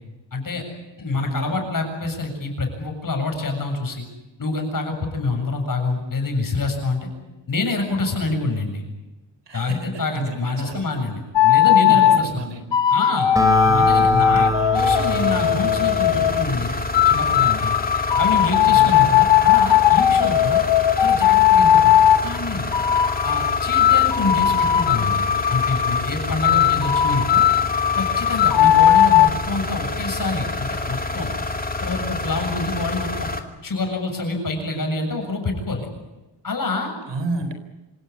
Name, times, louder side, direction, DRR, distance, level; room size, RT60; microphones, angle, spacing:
voice 1, 0.3-0.6 1.0-4.1 4.4-7.1 7.5-8.8 9.5-12.5 12.9-13.3 13.7-16.7 17.0-17.8 18.2-20.6 21.0-22.7 23.2-27.5 27.9-31.3 31.8-33.3 33.6-35.9 36.4-36.9, left 3 dB, 45° left, 4 dB, 7.6 m, -26 dB
voice 2, 1.1-1.6 9.5-10.8 11.8-12.6 13.5-14.7 18.7-18.9 26.5-26.7 37.1-37.5, right 3 dB, 60° right, 9 dB, 4.3 m, -31 dB
sound 1, 11.4-12.2 12.7-16.4 16.9-22.2 22.7-26.0 26.4-29.3, left 11 dB, 65° left, 1.3 m, -17 dB
Acoustic guitar, 13.4-16.9, right 2 dB, 5° right, 4.7 m, -24 dB
sound 2, 14.7-33.4, left 2 dB, 20° left, 2.7 m, -28 dB
27.0 x 17.0 x 9.9 m, 1.1 s
cardioid pair, 100°, 46 cm